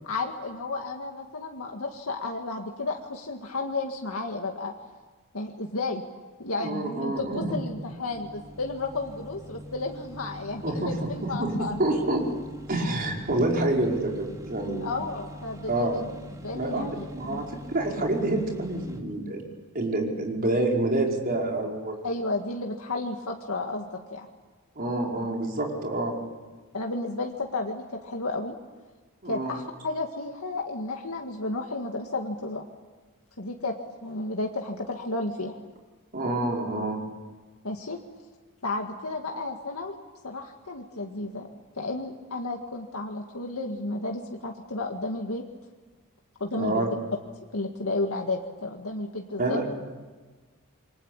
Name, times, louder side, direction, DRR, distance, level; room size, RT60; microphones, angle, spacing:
voice 1, 0.0-4.7 5.3-6.0 6.4-11.7 14.8-15.9 16.3-17.5 22.0-24.3 26.7-28.6 29.3-32.6 33.4-35.6 37.6-38.0 38.6-40.0 40.2-41.5 41.8-45.4 46.4-46.9 47.5-49.6, left 2 dB, 85° left, 2 dB, 2.0 m, -32 dB
voice 2, 6.6-7.6 10.6-10.9 11.4-12.2 12.7-14.9 15.7-16.0 16.5-19.4 19.7-22.0 24.8-26.1 29.2-29.5 36.1-37.0 46.5-46.9 49.4-49.7, right 2 dB, 45° right, 0 dB, 5.3 m, -27 dB
sound 1, 7.1-19.0, equal, 15° right, 2.8 m, -44 dB
28.0 x 24.0 x 8.9 m, 1.3 s
head